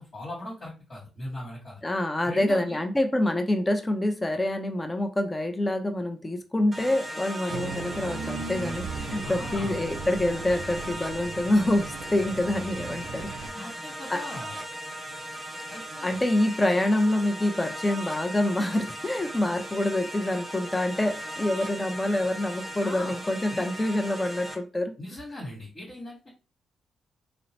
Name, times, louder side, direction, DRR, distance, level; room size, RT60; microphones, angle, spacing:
voice 1, 0.0-1.8 2.2-2.8 9.2-9.8 13.5-14.5 15.7-16.2 22.8-23.2 23.5-23.6 25.0-26.3, left 1 dB, 50° left, -6 dB, 1.2 m, -39 dB
voice 2, 1.8-13.7 14.1-14.2 16.0-24.9, left 1 dB, 20° left, 6 dB, 0.5 m, -26 dB
sound 1, 6.7-24.6, right 1 dB, 25° right, 0.8 m, -38 dB
sound 2, 7.5-13.5, right 4 dB, 70° right, 0.4 m, -37 dB
2.9 x 2.1 x 2.7 m, 0.32 s
hypercardioid pair, 40°, 0 cm